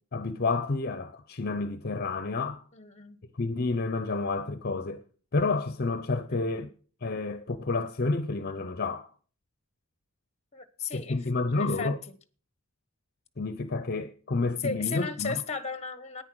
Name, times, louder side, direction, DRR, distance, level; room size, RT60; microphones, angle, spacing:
voice 1, 0.1-2.6 3.4-5.0 5.3-6.7 7.0-9.1 10.9-12.0 13.4-15.4, left 3 dB, 45° left, 0.7 m, -30 dB
voice 2, 2.7-3.2 6.3-6.5 10.5-11.2 11.5-11.9 14.6-16.2, left 5 dB, 30° left, 1.1 m, -35 dB
10.0 x 9.6 x 6.2 m
head